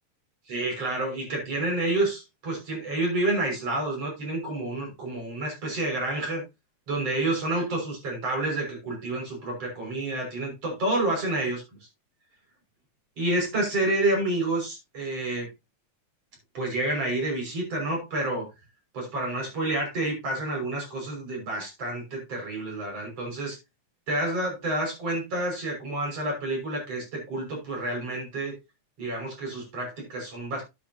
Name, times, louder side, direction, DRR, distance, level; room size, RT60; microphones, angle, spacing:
voice 1, 0.5-6.4 6.9-11.6 13.2-15.5 16.5-18.5 18.9-23.6 24.1-28.6 29.0-30.6, right 2 dB, 50° right, 0 dB, 7.3 m, -29 dB
12.0 x 9.8 x 2.9 m, 0.24 s
omnidirectional pair, 3.4 m